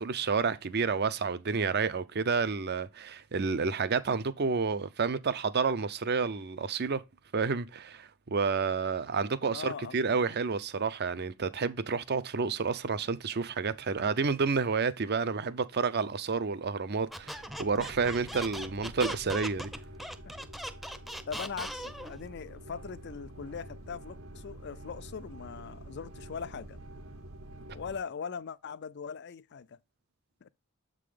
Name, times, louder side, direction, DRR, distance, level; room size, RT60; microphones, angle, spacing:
voice 1, 0.0-7.0 7.3-19.7, right 5 dB, 50° right, 0.6 m, -30 dB
voice 2, 9.5-10.3 20.2-20.4 21.3-26.8 27.7-29.8 30.4-30.5, left 6 dB, 50° left, 0.4 m, -41 dB
sound 1, 17.0-28.0, right 1 dB, 80° right, 1.5 m, -48 dB
Squeak, 17.1-22.2, equal, ahead, 0.6 m, -39 dB
7.6 x 3.8 x 4.9 m
head